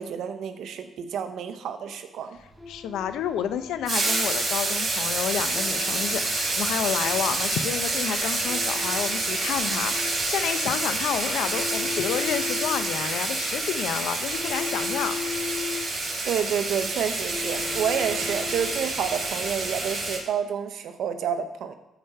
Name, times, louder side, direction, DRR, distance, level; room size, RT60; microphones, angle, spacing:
voice 1, 0.0-2.4 16.2-21.7, right 8 dB, 75° right, 8 dB, 1.0 m, -29 dB
sound 1, 2.5-19.1, left 6 dB, ahead, 1.0 m, -39 dB
voice 2, 2.7-15.2, left 9 dB, 85° left, 11 dB, 0.7 m, -30 dB
sound 2, 3.8-20.2, right 2 dB, 35° right, 3.8 m, -28 dB
13.0 x 5.1 x 5.7 m, 0.90 s
cardioid pair, 90°, 0 cm